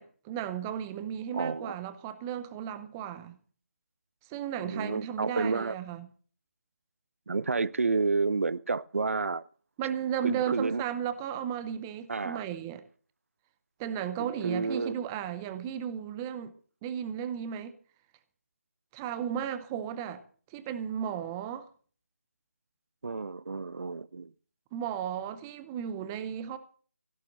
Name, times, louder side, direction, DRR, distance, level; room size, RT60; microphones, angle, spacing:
voice 1, 0.0-3.4 4.3-6.1 9.8-12.8 13.8-16.5 16.8-17.7 18.9-20.2 20.5-21.7 24.7-26.6, right 9 dB, 10° right, 0.6 m, -34 dB
voice 2, 1.3-1.8 4.6-5.7 7.3-9.4 10.2-10.8 12.1-12.4 14.2-15.0 23.0-24.3, right 4 dB, 65° right, 0.6 m, -30 dB
16.5 x 6.8 x 8.8 m
figure-of-eight pair, 165°, 8 cm